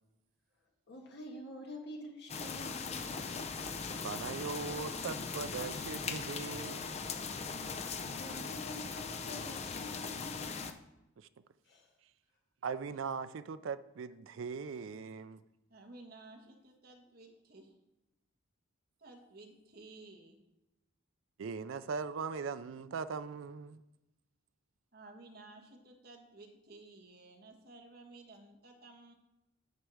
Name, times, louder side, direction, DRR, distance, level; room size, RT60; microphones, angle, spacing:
voice 1, 0.9-3.5 7.6-10.7 11.6-11.9, left 1 dB, 55° left, 0 dB, 1.5 m, -48 dB
sound 1, 2.3-10.7, left 5 dB, 30° left, 0.5 m, -39 dB
voice 2, 4.0-7.0 11.2-11.3 12.6-15.4 21.4-23.8, right 5 dB, 75° right, 12 dB, 0.4 m, -40 dB
voice 3, 15.7-17.7 19.0-20.4 24.9-29.1, right 2 dB, 50° right, 2 dB, 1.5 m, -54 dB
9.4 x 4.6 x 6.3 m, 0.94 s
head